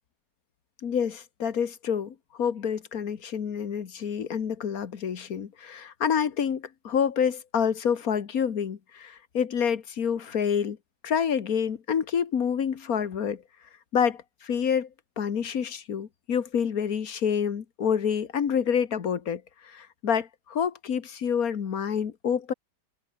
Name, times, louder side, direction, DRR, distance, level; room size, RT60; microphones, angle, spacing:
voice 1, 0.8-10.8 11.0-13.4 13.9-14.9 15.2-22.5, left 7 dB, 55° left, 1.8 m, -28 dB
omnidirectional pair, 1.9 m